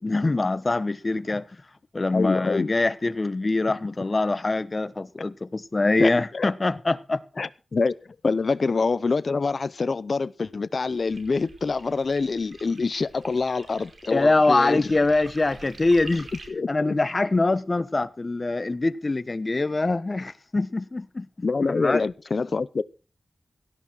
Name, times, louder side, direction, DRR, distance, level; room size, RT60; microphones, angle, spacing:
voice 1, 0.0-1.5 1.9-7.2 8.2-8.3 14.1-16.3 16.7-21.3 21.7-22.0, left 2 dB, 40° left, 1.1 m, -24 dB
voice 2, 2.1-2.7 6.0-6.5 7.4-7.9 8.2-14.9 16.5-16.7 21.4-22.8, left 4 dB, 60° left, 0.7 m, -25 dB
sound 1, 10.9-16.5, right 3 dB, 70° right, 5.1 m, -47 dB
17.5 x 12.0 x 4.6 m
wide cardioid pair, 70°, 0 cm